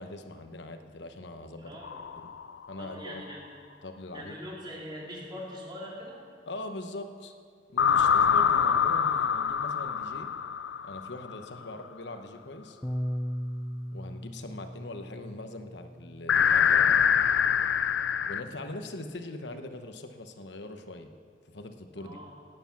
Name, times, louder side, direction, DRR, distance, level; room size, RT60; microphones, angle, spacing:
voice 1, 0.0-1.8 2.1-2.3 2.7-3.3 3.8-4.4 6.5-7.3 7.7-10.3 10.8-12.8 13.9-17.0 18.3-21.1 21.5-22.2, left 2 dB, 70° left, 7 dB, 1.0 m, -41 dB
voice 2, 1.6-2.0 2.8-3.5 4.1-6.2 11.5-11.8 21.9-22.3, equal, 25° right, -4 dB, 3.2 m, -42 dB
sound 1, 1.8-2.7 7.8-11.4 16.3-18.4, left 7 dB, 90° left, 0.5 m, -24 dB
Bass guitar, 12.8-19.1, equal, 10° left, 0.4 m, -39 dB
16.5 x 9.8 x 6.0 m, 2.1 s
head